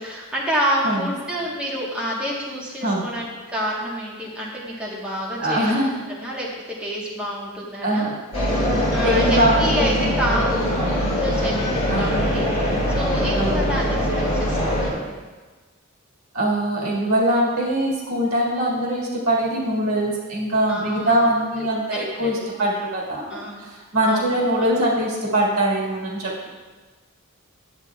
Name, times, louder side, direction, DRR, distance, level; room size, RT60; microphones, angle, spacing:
voice 1, 0.0-8.1 8.9-10.7 11.2-12.5 12.9-15.0 20.7-21.3 21.9-22.5 23.3-23.6 24.0-24.7, equal, 5° right, -6 dB, 1.2 m, -28 dB
voice 2, 5.4-6.0 7.8-8.2 9.0-10.2 11.9-12.2 13.4-13.7 16.3-23.4 23.9-26.5, right 1 dB, 75° right, -4 dB, 1.8 m, -22 dB
sound 1, 8.3-14.9, equal, 30° left, 2.2 m, -22 dB
9.8 x 7.9 x 2.3 m, 1.3 s
head